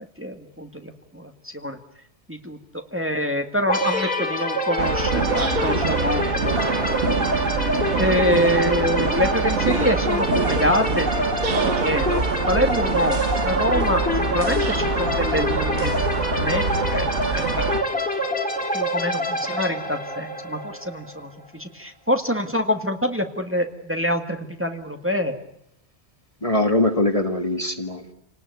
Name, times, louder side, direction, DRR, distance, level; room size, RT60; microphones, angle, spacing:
voice 1, 0.2-1.8 2.3-7.1 8.0-11.1 11.8-12.2 12.5-14.0 14.3-15.9 16.3-17.8 18.7-25.3, equal, 10° right, 5 dB, 1.9 m, -25 dB
sound 1, 3.7-21.3, left 1 dB, 5° left, 3.1 m, -26 dB
sound 2, 4.8-17.8, right 4 dB, 90° right, 1.7 m, -25 dB
voice 2, 26.4-28.1, left 1 dB, 30° left, 7 dB, 1.7 m, -22 dB
28.5 x 19.0 x 9.4 m, 0.77 s
omnidirectional pair, 1.2 m